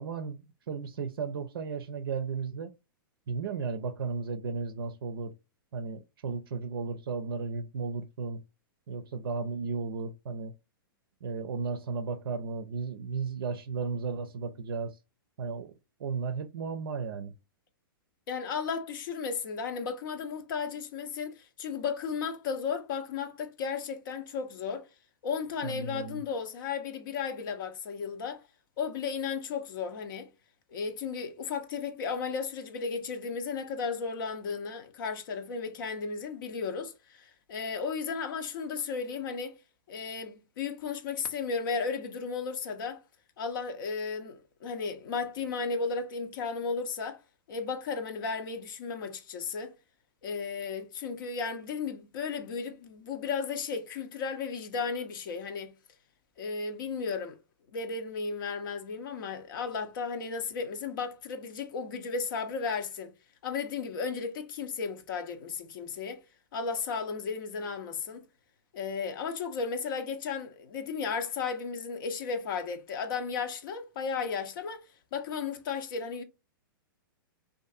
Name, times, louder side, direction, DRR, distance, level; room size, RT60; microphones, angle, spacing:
voice 1, 0.0-2.7 3.3-5.3 5.7-8.4 8.9-10.5 11.2-15.0 15.4-15.7 16.0-17.3 25.6-26.2, right 5 dB, 80° right, 0.4 m, -34 dB
voice 2, 18.3-24.8 25.2-28.4 28.8-30.3 30.7-39.5 39.9-43.0 43.4-47.2 47.5-49.8 50.2-55.7 56.4-57.4 57.7-63.1 63.4-66.2 66.5-68.3 68.7-76.2, left 5 dB, 65° left, 0.6 m, -34 dB
2.6 x 2.5 x 2.3 m
hypercardioid pair, 120°, 12 cm